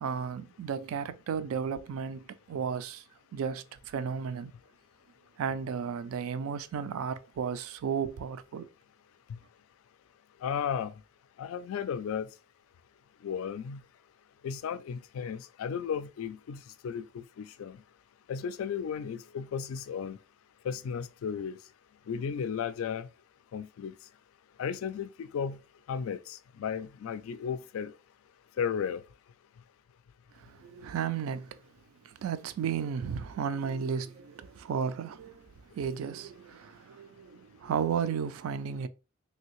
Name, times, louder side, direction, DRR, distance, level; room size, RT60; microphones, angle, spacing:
voice 1, 0.0-3.0 3.3-4.5 5.4-8.7 30.4-31.6 32.0-38.9, right 7 dB, 90° right, 0.3 m, -34 dB
voice 2, 10.4-10.9 11.4-12.3 13.2-13.8 14.4-17.8 18.3-20.2 20.6-21.6 22.1-23.1 23.5-23.9 24.6-25.6 25.9-27.9 28.6-29.0, left 7 dB, 85° left, 0.3 m, -34 dB
3.3 x 2.7 x 2.9 m
head